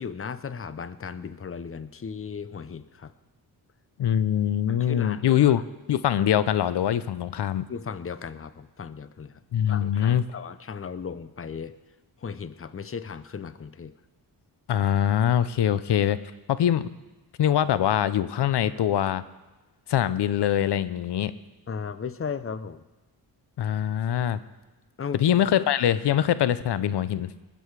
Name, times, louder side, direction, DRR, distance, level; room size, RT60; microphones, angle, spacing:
voice 1, 0.0-3.1 4.7-5.6 7.7-9.4 9.7-11.7 12.2-13.9 21.7-22.8 25.0-25.2, left 6 dB, 30° left, 14 dB, 0.7 m, -36 dB
voice 2, 4.0-5.6 5.9-7.7 9.5-10.2 14.7-16.2 16.5-16.9 17.4-19.2 19.9-21.3 23.6-24.4 25.2-27.3, left 10 dB, 75° left, 15 dB, 0.7 m, -23 dB
20.0 x 7.8 x 4.7 m, 1.1 s
cardioid pair, 75°, 41 cm